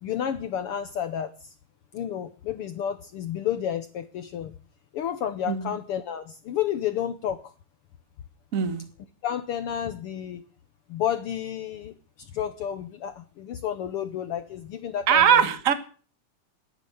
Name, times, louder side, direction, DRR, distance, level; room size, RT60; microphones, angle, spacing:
voice 1, 0.0-1.5 1.9-4.5 4.9-7.4 9.2-10.4 10.9-15.4, left 9 dB, 85° left, 11 dB, 1.2 m, -31 dB
voice 2, 8.5-8.9 15.1-15.7, right 8 dB, 60° right, 11 dB, 0.8 m, -21 dB
13.0 x 10.5 x 9.3 m, 0.40 s
omnidirectional pair, 3.7 m